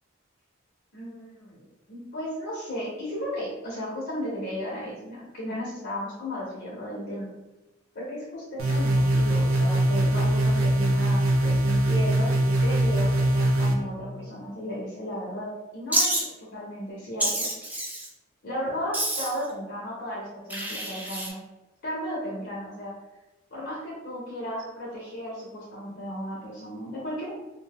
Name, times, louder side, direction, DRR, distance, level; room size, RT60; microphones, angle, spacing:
voice 1, 0.9-7.3 7.9-17.5 18.4-21.4 21.8-22.9 23.5-27.3, equal, 55° left, -5 dB, 0.7 m, -35 dB
sound 1, 8.6-13.7, right 1 dB, 85° right, 0.5 m, -22 dB
Wild animals, 15.9-16.2 17.2-18.1 18.9-19.4 20.5-21.3, right 1 dB, 10° right, 0.4 m, -27 dB
2.6 x 2.1 x 3.4 m, 1.0 s
head